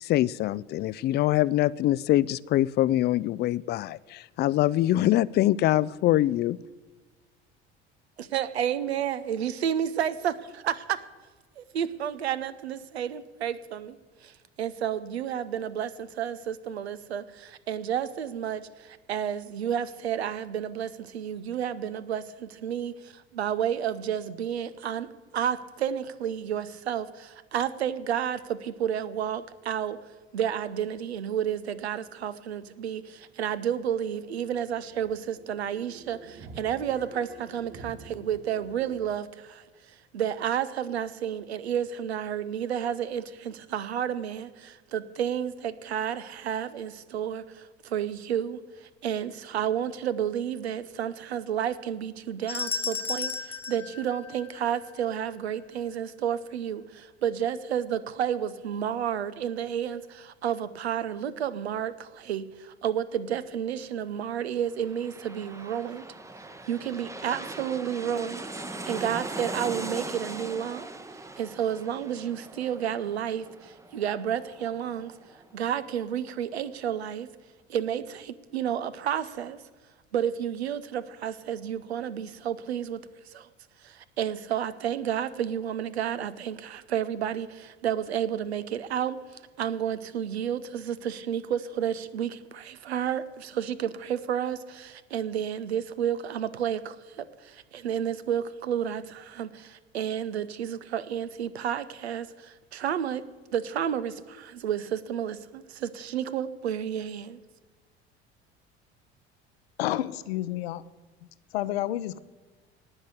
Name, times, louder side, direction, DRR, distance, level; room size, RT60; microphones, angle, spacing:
voice 1, 0.0-6.6, left 14 dB, 30° left, 20 dB, 0.4 m, -24 dB
voice 2, 8.2-11.0 11.6-25.1 25.3-30.0 30.3-66.0 66.7-70.9 71.1-77.3 77.7-79.6 80.1-83.5 83.8-103.2 103.5-107.4, right 9 dB, 75° right, 15 dB, 0.8 m, -31 dB
sound 1, 32.2-32.3 32.6-32.7 33.0-39.0, right 4 dB, 35° right, 2.0 m, -49 dB
sound 2, 52.5-54.9, left 5 dB, 5° left, 1.4 m, -34 dB
sound 3, 64.5-75.9 76.2-76.3, right 2 dB, 10° right, 0.8 m, -40 dB
voice 3, 109.8-110.8 111.5-112.2, left 14 dB, 65° left, 16 dB, 0.7 m, -29 dB
18.5 x 6.5 x 8.1 m, 1.3 s
figure-of-eight pair, 65°, 33 cm